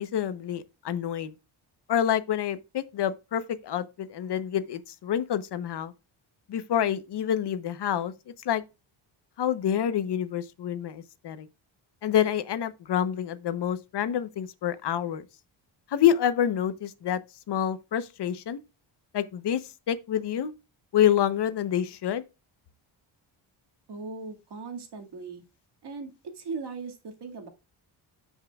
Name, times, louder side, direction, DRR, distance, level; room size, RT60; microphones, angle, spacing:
voice 1, 0.0-1.3 1.9-5.9 6.5-8.1 8.4-8.6 9.4-11.5 12.0-15.2 15.9-17.2 17.5-18.6 19.1-19.6 19.9-20.5 20.9-22.2, left 10 dB, 55° left, 0.9 m, -27 dB
voice 2, 23.9-25.4 25.8-27.5, right 4 dB, 55° right, 2.0 m, -38 dB
13.0 x 5.6 x 2.3 m
cardioid pair, 120°, 48 cm